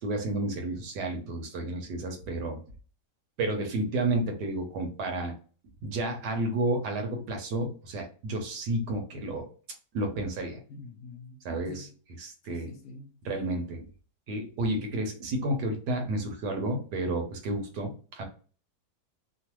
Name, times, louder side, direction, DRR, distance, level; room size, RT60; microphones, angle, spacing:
voice 1, 0.0-2.6 3.4-5.3 5.8-9.5 9.9-10.6 11.4-11.9 12.2-12.7 13.2-13.8 14.3-18.2, right 2 dB, 80° right, 1.3 m, -31 dB
voice 2, 10.7-11.4 11.7-11.9 12.4-13.2, left 3 dB, 70° left, 1.0 m, -46 dB
3.1 x 2.2 x 2.9 m
omnidirectional pair, 1.8 m